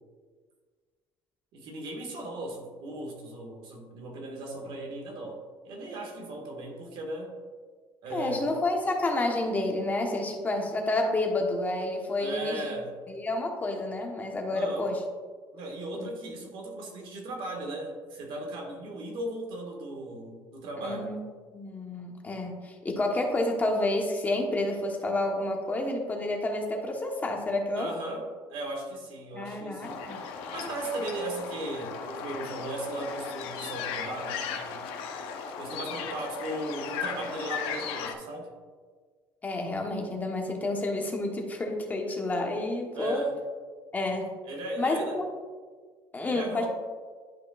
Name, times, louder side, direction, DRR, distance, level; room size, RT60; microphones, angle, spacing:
voice 1, 1.5-7.4 8.0-8.5 12.2-12.9 14.5-14.9 15.5-21.1 27.7-30.2 30.5-34.8 35.6-38.5 42.9-43.3 44.4-45.2 46.2-46.7, right 2 dB, 70° right, 1 dB, 1.6 m, -37 dB
voice 2, 8.1-12.7 13.1-15.0 15.9-16.1 20.8-21.2 21.5-27.9 29.3-30.2 39.4-43.3 43.9-44.4 44.8-45.2 46.1-46.7, left 2 dB, 20° left, 1 dB, 1.0 m, -29 dB
sound 1, 29.8-38.1, left 6 dB, 90° left, 0.8 m, -36 dB
11.0 x 5.2 x 2.4 m, 1.5 s
cardioid pair, 145°, 9 cm